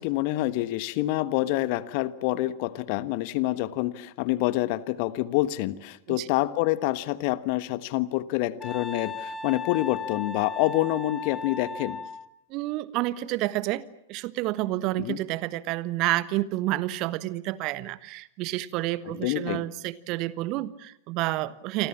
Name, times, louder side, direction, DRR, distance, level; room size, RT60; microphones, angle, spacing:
voice 1, 0.0-12.0 15.0-15.2 19.1-19.6, left 17 dB, 45° left, 15 dB, 1.3 m, -27 dB
Wind instrument woodwind instrument, 8.6-12.2, left 3 dB, 10° left, 3.9 m, -36 dB
voice 2, 12.5-13.8 14.1-21.9, right 17 dB, 40° right, 17 dB, 1.2 m, -29 dB
28.5 x 25.0 x 7.4 m, 0.75 s
figure-of-eight pair, 95°, 0 cm